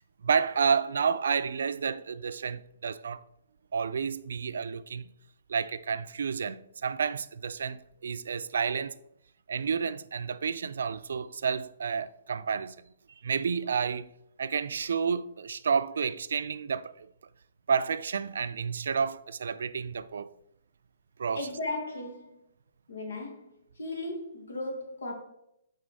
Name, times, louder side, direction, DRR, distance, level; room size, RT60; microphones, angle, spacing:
voice 1, 0.2-3.2 3.7-5.1 5.5-9.0 9.5-12.7 13.2-14.1 14.4-17.1 17.7-20.3 21.2-21.5, right 6 dB, 80° right, 0.3 m, -30 dB
voice 2, 21.3-22.3 22.9-23.4 23.8-25.1, left 2 dB, 90° left, 1.8 m, -36 dB
6.2 x 4.0 x 4.0 m
hypercardioid pair, 160°, 0 cm